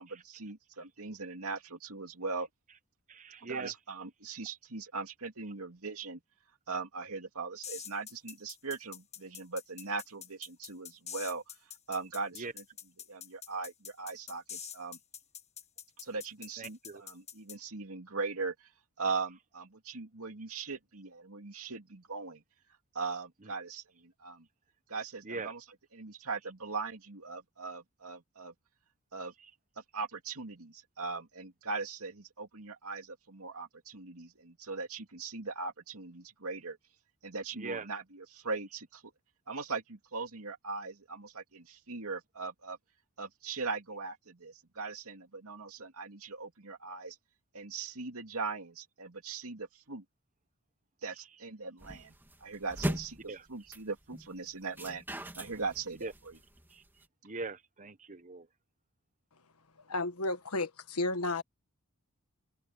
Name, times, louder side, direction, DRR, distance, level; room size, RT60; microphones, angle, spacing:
voice 1, 0.0-2.5 3.4-6.2 6.7-11.4 11.9-12.6 13.1-15.0 16.0-18.7 19.0-22.4 22.9-24.4 24.9-25.6 25.9-28.5 29.1-29.3 29.9-36.8 37.2-39.0 39.5-42.8 43.2-47.2 47.5-50.0 51.0-52.1 52.4-55.0 55.3-56.4, right 4 dB, 70° right, 2.7 m, -40 dB
voice 2, 3.1-3.7 12.4-12.5 16.6-17.0 25.2-25.5 37.5-37.9 53.3-53.4 56.0-56.1 56.7-56.8 57.2-58.5, right 3 dB, 35° right, 1.2 m, -41 dB
sound 1, 7.6-17.6, left 8 dB, 30° left, 1.3 m, -45 dB
sound 2, 51.8-57.0, right 1 dB, 10° right, 2.6 m, -40 dB
voice 3, 59.9-61.4, left 2 dB, 75° left, 1.5 m, -32 dB
head